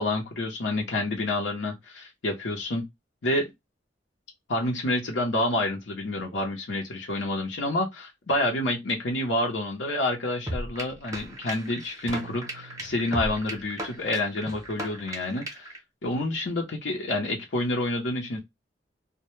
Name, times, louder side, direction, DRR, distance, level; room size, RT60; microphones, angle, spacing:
voice 1, 0.0-2.8 3.2-3.5 4.5-15.7 16.0-18.4, left 1 dB, 85° left, 0.7 m, -28 dB
sound 1, 10.5-15.8, right 1 dB, 20° right, 0.7 m, -36 dB
Drum, 12.1-14.0, right 5 dB, 85° right, 0.4 m, -46 dB
2.1 x 2.1 x 3.0 m
head